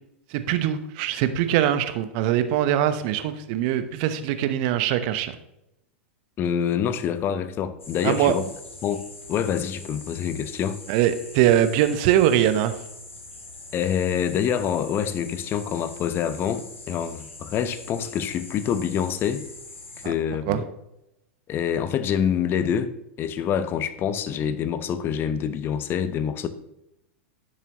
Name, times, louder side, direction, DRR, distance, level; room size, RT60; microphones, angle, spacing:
voice 1, 0.3-5.3 8.0-8.3 10.9-12.7 20.0-20.1 20.5-20.6, right 11 dB, 50° right, 0.9 m, -22 dB
voice 2, 6.4-8.4 8.8-9.0 9.3-10.8 13.7-19.4 20.0-20.7 21.5-26.5, left 8 dB, 35° left, 0.8 m, -26 dB
sound 1, 7.8-20.1, left 2 dB, 90° left, 2.1 m, -43 dB
10.5 x 7.4 x 3.0 m
hypercardioid pair, 95°, 7 cm